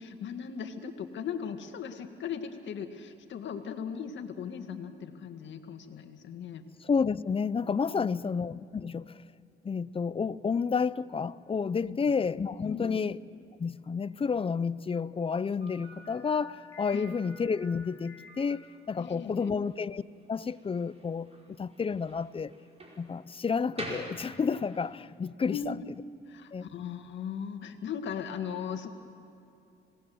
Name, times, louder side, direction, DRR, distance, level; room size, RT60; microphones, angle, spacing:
voice 1, 0.0-6.7 8.0-8.3 11.8-12.0 12.6-13.0 16.9-17.1 19.0-19.5 25.4-25.8 26.3-28.9, left 7 dB, 65° left, 2.0 m, -38 dB
voice 2, 6.8-9.1 9.6-13.2 13.6-20.0 20.3-22.5 23.0-25.7 26.5-26.6, left 5 dB, 30° left, 0.6 m, -30 dB
Slam, 15.6-24.9, right 1 dB, 30° right, 5.2 m, -48 dB
26.5 x 19.0 x 7.9 m
cardioid pair, 90°, 20 cm